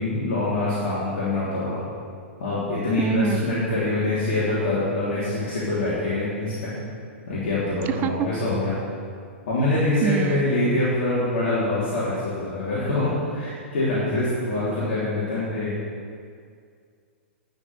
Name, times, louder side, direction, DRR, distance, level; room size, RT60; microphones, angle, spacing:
voice 1, 0.0-1.8 2.4-6.7 7.3-8.7 9.5-15.7, left 2 dB, 55° left, -9 dB, 3.2 m, -25 dB
voice 2, 3.0-3.4 8.0-8.3 10.0-10.4, right 9 dB, 30° right, 10 dB, 0.4 m, -25 dB
9.9 x 6.6 x 7.9 m, 2.2 s
figure-of-eight pair, 110°, 7 cm